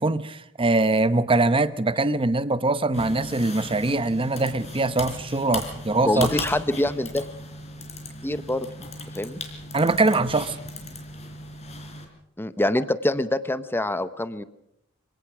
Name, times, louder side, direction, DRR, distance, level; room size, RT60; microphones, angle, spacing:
voice 1, 0.0-6.3 9.7-10.6, right 2 dB, 25° right, 0.8 m, -22 dB
sound 1, 2.9-12.0, left 2 dB, 35° left, 3.9 m, -37 dB
voice 2, 6.0-7.3 8.2-8.7 9.2-9.4 12.4-14.4, left 1 dB, 10° left, 0.8 m, -25 dB
25.5 x 17.5 x 6.1 m
head